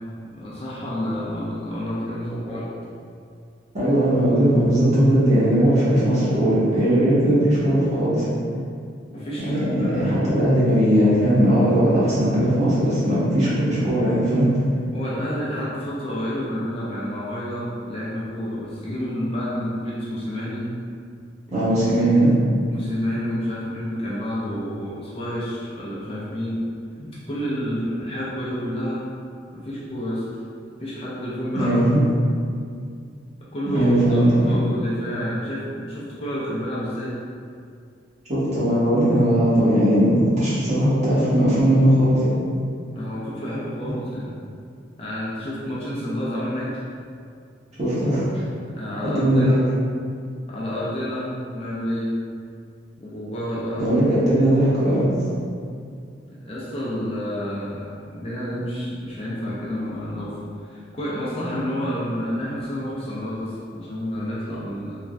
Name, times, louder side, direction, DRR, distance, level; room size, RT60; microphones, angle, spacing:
voice 1, 0.3-2.7 9.1-10.3 14.9-20.6 21.5-21.7 22.7-26.6 27.0-29.0 29.5-30.2 30.8-32.0 33.5-37.2 42.9-44.4 45.0-46.8 48.8-49.6 50.5-52.1 53.0-53.9 54.3-54.4 56.4-64.9, equal, 30° left, -8 dB, 0.4 m, -29 dB
voice 2, 3.7-8.3 9.5-14.5 21.5-22.3 31.5-31.9 33.7-34.5 38.3-42.3 47.8-48.3 49.0-49.6 53.8-55.1, right 1 dB, 35° right, -10 dB, 0.9 m, -19 dB
3.1 x 2.2 x 2.5 m, 2.3 s
head